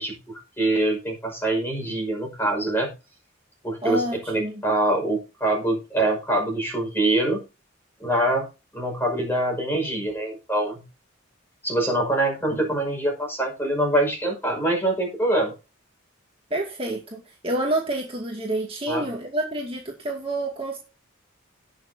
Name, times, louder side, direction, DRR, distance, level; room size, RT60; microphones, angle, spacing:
voice 1, 0.0-2.9 3.6-7.4 8.0-8.5 8.7-10.8 11.6-15.5 18.9-19.1, right 1 dB, 10° left, 1 dB, 5.6 m, -24 dB
voice 2, 3.8-4.6 16.5-20.8, right 1 dB, 25° right, -1 dB, 2.2 m, -28 dB
18.5 x 6.8 x 2.8 m, 0.30 s
head